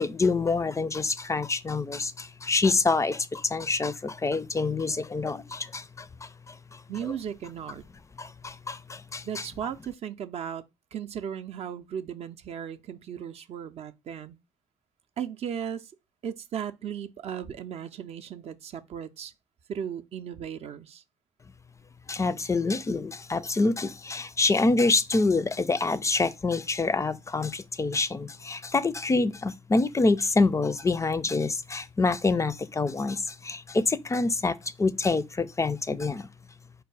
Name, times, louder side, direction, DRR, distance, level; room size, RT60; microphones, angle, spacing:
voice 1, 0.0-6.5 7.0-7.1 8.2-9.5 22.1-36.3, left 3 dB, 25° left, 0.4 m, -26 dB
voice 2, 6.9-7.8 9.2-10.6 10.9-14.4 15.2-15.9 16.2-19.3 19.7-21.0, right 8 dB, 55° right, 0.5 m, -36 dB
4.6 x 2.3 x 4.6 m
hypercardioid pair, 50°, 13 cm